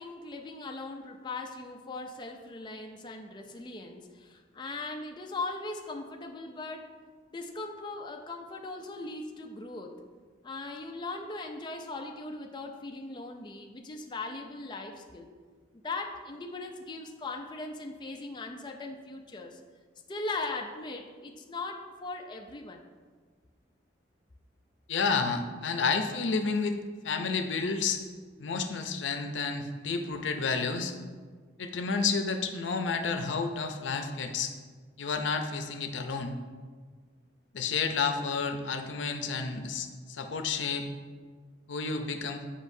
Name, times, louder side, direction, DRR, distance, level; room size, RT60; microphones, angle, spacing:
voice 1, 0.0-6.9 7.3-10.0 10.4-15.3 15.7-19.6 20.1-22.8, left 3 dB, 25° left, 2 dB, 0.5 m, -39 dB
voice 2, 24.9-26.8 27.0-28.0 28.4-30.9 31.6-34.5 35.0-36.4 37.5-40.9 41.7-42.4, left 5 dB, 85° left, 6 dB, 0.6 m, -30 dB
10.0 x 5.2 x 2.7 m, 1.5 s
head